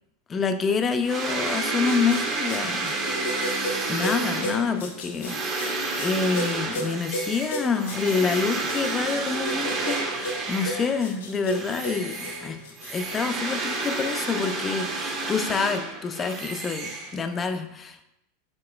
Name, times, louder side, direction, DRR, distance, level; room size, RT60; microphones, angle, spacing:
voice 1, 0.3-3.0 3.9-12.6 12.9-18.0, left 5 dB, 25° left, 8 dB, 0.4 m, -27 dB
sound 1, 1.1-11.1 11.5-17.5, right 3 dB, 35° right, 0.8 m, -30 dB
sound 2, 1.7-13.1, equal, 85° left, 0.8 m, -34 dB
4.9 x 3.7 x 2.3 m, 0.82 s
supercardioid pair, 125°, 0 cm